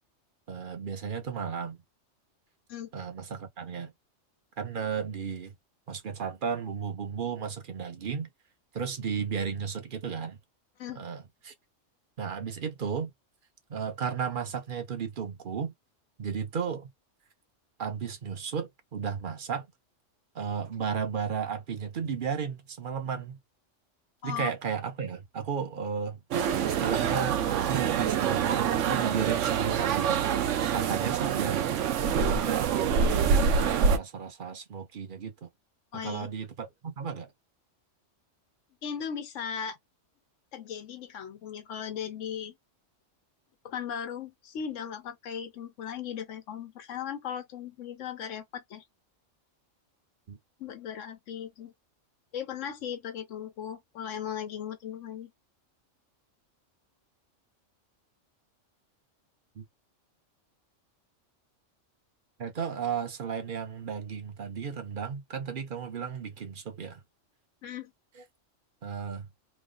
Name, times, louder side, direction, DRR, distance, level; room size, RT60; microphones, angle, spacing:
voice 1, 0.5-1.8 2.9-3.9 4.6-5.5 5.9-8.3 8.7-10.4 11.0-11.5 12.2-13.1 13.7-15.7 16.2-16.9 17.8-19.7 20.3-23.4 24.2-26.2 26.6-30.3 30.7-31.6 32.1-35.5 36.0-37.3 50.3-50.4 59.6-59.7 62.4-67.0 68.8-69.3, right 6 dB, 50° right, 0.8 m, -34 dB
sound 1, 26.3-34.0, right 7 dB, 75° right, 1.0 m, -26 dB
voice 2, 35.9-36.3 38.8-39.8 40.5-42.5 43.6-48.8 50.6-51.7 52.3-55.3 67.6-67.9, left 8 dB, 80° left, 1.1 m, -37 dB
3.1 x 2.0 x 3.7 m
omnidirectional pair, 1.3 m